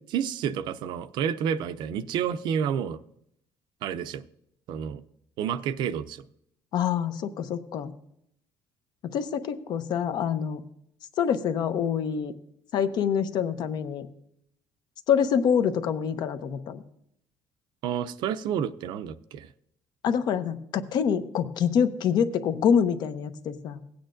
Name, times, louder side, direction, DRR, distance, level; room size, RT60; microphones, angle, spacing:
voice 1, 0.1-3.0 3.8-4.2 4.7-5.0 5.4-6.2 17.8-19.5, right 8 dB, 65° right, 13 dB, 0.5 m, -29 dB
voice 2, 6.7-7.9 9.0-10.6 11.2-12.3 12.7-14.1 15.1-16.8 20.0-23.8, left 7 dB, 60° left, 10 dB, 0.8 m, -26 dB
16.5 x 8.8 x 2.5 m, 0.73 s
cardioid pair, 140°, 8 cm